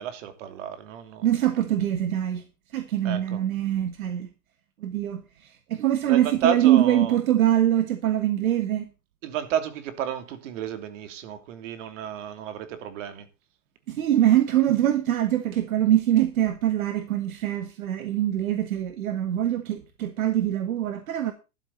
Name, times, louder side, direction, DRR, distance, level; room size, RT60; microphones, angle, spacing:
voice 1, 0.0-1.3 3.0-3.4 6.1-7.2 9.2-13.3, right 9 dB, 60° right, 3.1 m, -31 dB
voice 2, 1.2-2.5 2.7-4.3 4.8-8.9 13.9-21.3, right 12 dB, 75° right, 1.8 m, -23 dB
13.0 x 12.0 x 4.1 m
hypercardioid pair, 135°, 42 cm